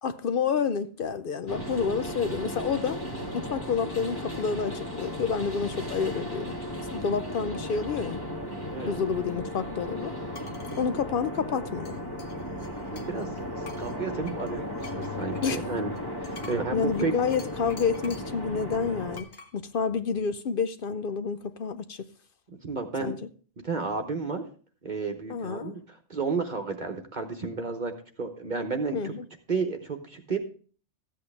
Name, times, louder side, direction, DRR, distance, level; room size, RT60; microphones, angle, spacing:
voice 1, 0.0-3.0 3.3-6.6 6.9-8.2 8.9-10.1 10.8-12.0 15.4-15.6 16.7-22.1 23.0-23.2 25.3-25.7 28.9-29.3, left 6 dB, 60° left, 0.7 m, -29 dB
sound 1, 1.5-19.2, left 1 dB, 20° left, 1.3 m, -35 dB
voice 2, 8.7-9.0 12.9-15.9 16.2-17.1 22.5-23.2 23.6-24.4 24.8-29.1 29.5-30.4, right 4 dB, 45° right, 1.0 m, -32 dB
sound 2, 10.4-10.9 11.9-13.3 13.6-18.4 19.1-19.5, left 4 dB, 40° left, 1.1 m, -48 dB
14.0 x 8.5 x 3.3 m
omnidirectional pair, 1.2 m